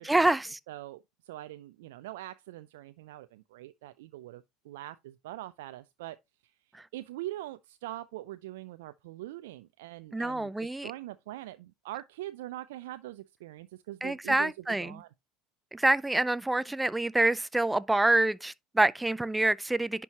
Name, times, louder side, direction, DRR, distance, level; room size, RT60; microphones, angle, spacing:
voice 1, 0.0-0.6 10.1-10.9 14.0-15.0 15.7-20.0, right 2 dB, 10° right, 0.4 m, -26 dB
voice 2, 0.7-6.2 6.9-14.5 14.8-15.1, right 15 dB, 70° right, 0.4 m, -43 dB
10.5 x 4.6 x 2.8 m
hypercardioid pair, 70°, 0 cm